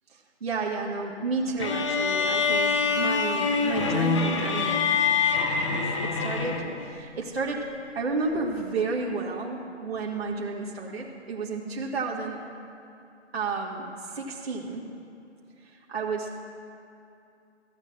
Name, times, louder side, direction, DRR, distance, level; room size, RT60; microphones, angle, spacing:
voice 1, 0.1-4.9 5.7-7.7 8.0-12.4 13.3-14.9 15.6-16.3, right 4 dB, 55° right, -3 dB, 2.0 m, -31 dB
sound 1, 1.6-6.9, left 5 dB, 25° left, 0.9 m, -25 dB
15.0 x 8.0 x 7.5 m, 2.7 s
figure-of-eight pair, 145°, 36 cm